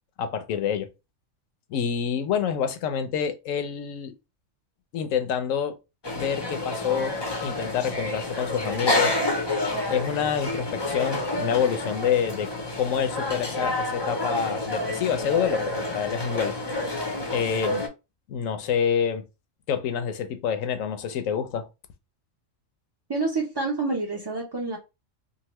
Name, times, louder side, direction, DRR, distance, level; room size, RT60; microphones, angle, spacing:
voice 1, 0.2-0.9 1.7-4.1 4.9-5.8 6.1-9.4 9.9-12.5 12.8-16.5 17.3-17.8 18.3-19.2 19.7-21.7, left 8 dB, 80° left, 1.0 m, -27 dB
sound 1, 6.0-17.9, left 1 dB, 35° left, 0.4 m, -29 dB
voice 2, 23.1-24.8, right 3 dB, 40° right, 0.3 m, -28 dB
2.8 x 2.5 x 3.0 m
omnidirectional pair, 1.4 m